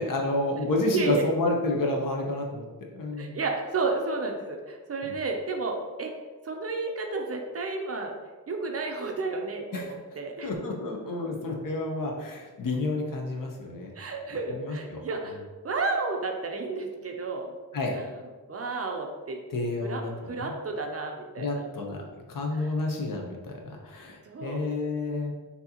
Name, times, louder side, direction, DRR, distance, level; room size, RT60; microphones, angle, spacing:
voice 1, 0.0-2.6 2.9-3.4 5.0-5.1 9.7-9.9 10.4-13.9 14.6-15.0 17.7-18.0 19.5-20.1 20.4-20.5 21.4-22.0 22.3-25.3, left 2 dB, 60° left, 1 dB, 0.8 m, -30 dB
voice 2, 0.9-1.3 3.2-6.1 6.4-8.1 8.5-10.5 13.9-17.5 17.9-18.1 18.5-19.4 19.8-20.0 20.3-21.6 22.5-22.7 24.2-24.7, right 3 dB, 40° right, 2 dB, 0.5 m, -32 dB
6.2 x 2.7 x 2.8 m, 1.3 s
wide cardioid pair, 170°, 37 cm